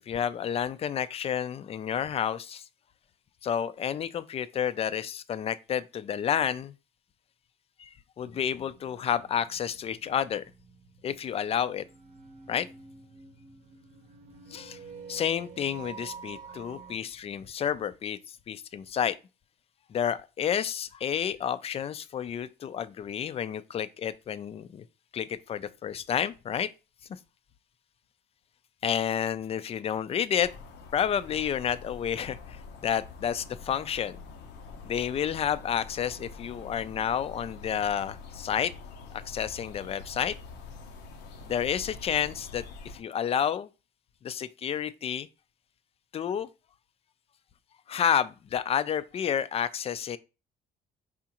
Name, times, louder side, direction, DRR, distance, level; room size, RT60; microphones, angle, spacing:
voice 1, 0.1-2.6 3.4-6.7 7.8-7.9 8.2-10.4 11.0-11.8 12.5-12.7 14.5-14.8 15.1-19.2 19.9-24.8 25.1-26.7 28.8-30.5 30.9-34.2 34.9-38.7 39.1-40.4 41.5-43.7 44.2-45.3 46.1-46.5 47.9-50.2, left 8 dB, 35° left, 0.4 m, -30 dB
sound 1, 8.2-17.0, right 5 dB, 45° right, 0.8 m, -49 dB
sound 2, 30.4-43.0, left 4 dB, 85° left, 0.8 m, -45 dB
5.0 x 3.6 x 2.9 m
cardioid pair, 110°, 17 cm